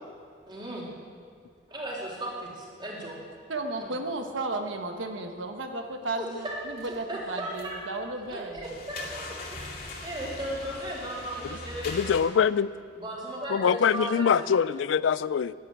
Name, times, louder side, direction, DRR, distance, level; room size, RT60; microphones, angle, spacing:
voice 1, 0.5-0.9 1.7-3.2 3.8-3.9 6.2-7.8 8.3-12.3 12.9-14.7, right 1 dB, 25° right, -4 dB, 3.4 m, -36 dB
voice 2, 3.5-8.8 9.6-9.7, right 2 dB, 90° right, 4 dB, 1.3 m, -34 dB
sound 1, 6.8-7.0 7.5-7.9 8.2-12.2, left 2 dB, 50° left, 2.2 m, -40 dB
voice 3, 11.9-12.7 13.6-15.5, left 7 dB, 80° left, 18 dB, 0.3 m, -23 dB
11.5 x 11.0 x 8.9 m, 2.1 s
head